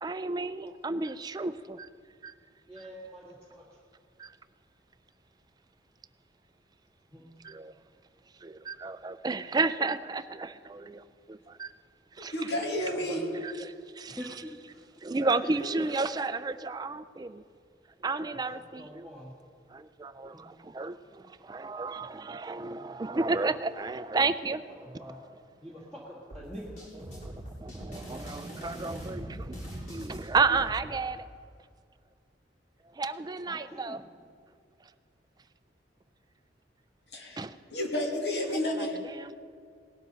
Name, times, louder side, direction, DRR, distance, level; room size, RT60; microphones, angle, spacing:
voice 1, 0.0-1.9 2.2-2.3 4.2-4.3 7.4-7.7 8.4-11.7 12.1-12.5 13.4-14.2 15.0-17.4 18.0-19.1 19.7-24.9 27.1-27.3 27.6-31.3 32.9-34.0 37.4-37.6 38.6-39.4, right 3 dB, 20° right, 12 dB, 0.4 m, -32 dB
voice 2, 2.7-3.8 7.1-7.3 12.9-13.2 14.1-14.9 15.6-16.0 18.5-19.3 20.3-20.5 22.5-23.0 24.8-25.2 25.6-26.8 33.5-34.0, equal, 5° left, -7 dB, 1.7 m, -45 dB
voice 3, 12.3-13.2 37.1-37.4 37.7-39.0, left 1 dB, 65° left, 1 dB, 2.1 m, -31 dB
sound 1, 26.3-30.7, equal, 40° left, 4.3 m, -41 dB
19.0 x 12.5 x 4.0 m, 2.2 s
head